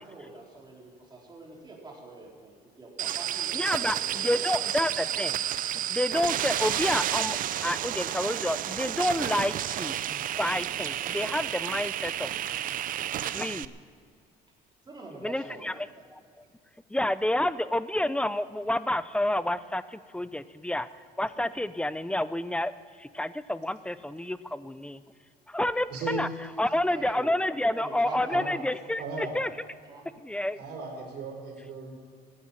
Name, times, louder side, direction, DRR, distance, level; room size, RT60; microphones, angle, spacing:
voice 1, 0.0-4.8 14.9-16.1 26.9-27.3 27.7-28.8 29.8-30.1, right 2 dB, 25° right, -2 dB, 4.2 m, -44 dB
sound 1, 3.0-13.6, right 11 dB, 55° right, 0.5 m, -31 dB
voice 2, 3.5-5.4 5.9-7.4 7.6-12.7 13.1-13.7 15.2-16.2 16.9-20.9 21.2-22.7 23.0-25.0 25.5-26.3 26.6-29.5 30.2-30.6, left 1 dB, 5° left, 15 dB, 0.5 m, -29 dB
voice 3, 29.0-29.3 30.6-31.9, right 3 dB, 80° right, 0 dB, 4.8 m, -36 dB
15.0 x 9.7 x 8.9 m, 2.1 s
cardioid pair, 110°, 17 cm